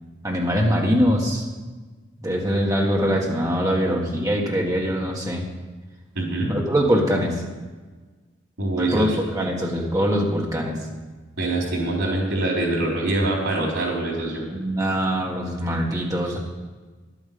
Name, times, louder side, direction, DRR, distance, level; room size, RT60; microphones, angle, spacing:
voice 1, 0.2-1.4 2.2-5.4 6.5-7.4 8.8-9.1 9.3-10.7 14.5-16.4, equal, 15° right, -1 dB, 1.6 m, -22 dB
voice 2, 6.1-6.5 8.6-9.2 11.4-14.4 16.3-16.4, right 2 dB, 85° right, -2 dB, 4.0 m, -24 dB
11.0 x 9.0 x 6.8 m, 1.4 s
head